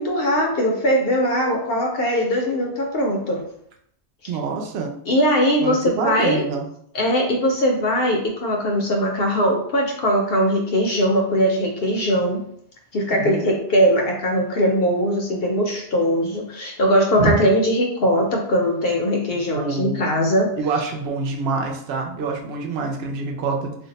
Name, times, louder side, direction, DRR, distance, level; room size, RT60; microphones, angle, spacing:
voice 1, 0.0-3.4 4.2-4.3 5.1-6.4 6.9-12.4 12.9-20.5, equal, 65° left, 1 dB, 0.7 m, -20 dB
voice 2, 4.3-4.9 5.6-6.6 13.1-13.5 17.2-17.4 19.5-20.1 20.6-23.8, right 4 dB, 70° right, 2 dB, 0.8 m, -25 dB
2.5 x 2.1 x 3.9 m, 0.69 s
omnidirectional pair, 1.1 m